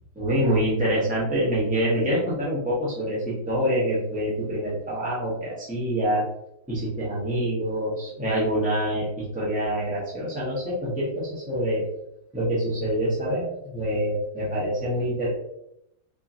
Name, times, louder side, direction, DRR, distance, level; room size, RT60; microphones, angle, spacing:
voice 1, 0.1-6.2 6.7-11.8 12.3-15.3, equal, 10° right, -8 dB, 0.5 m, -26 dB
4.5 x 3.0 x 2.7 m, 0.79 s
omnidirectional pair, 2.3 m